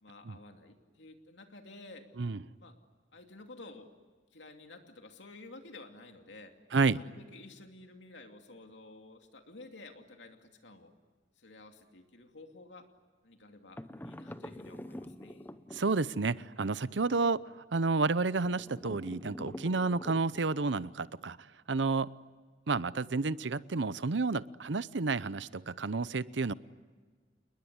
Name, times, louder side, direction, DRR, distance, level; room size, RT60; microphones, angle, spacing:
voice 1, 0.0-2.1 2.6-2.8 3.1-3.9 4.3-6.5 6.8-10.9 11.4-12.9 13.2-15.5, left 2 dB, 80° left, 4 dB, 2.7 m, -52 dB
sound 1, 13.8-16.3 18.4-20.7, left 1 dB, 10° left, 0.8 m, -46 dB
voice 2, 15.7-17.4 17.7-21.4 21.7-22.1 22.7-26.5, right 3 dB, 75° right, 17 dB, 0.7 m, -30 dB
29.0 x 21.0 x 9.7 m, 1.4 s
head